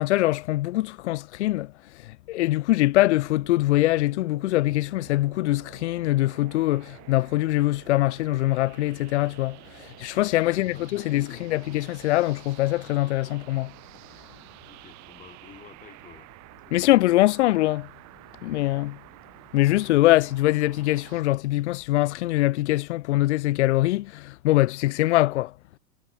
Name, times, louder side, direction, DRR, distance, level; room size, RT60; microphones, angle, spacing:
voice 1, 0.0-13.7 16.7-17.9 18.4-19.0 19.5-25.5, left 17 dB, 50° left, 0.5 m, -23 dB
sound 1, 3.2-21.2, right 21 dB, 35° right, 5.7 m, -49 dB
voice 2, 10.4-11.6 14.6-16.3 16.7-17.0, left 7 dB, 15° left, 3.8 m, -50 dB
hypercardioid pair, 120°, 46 cm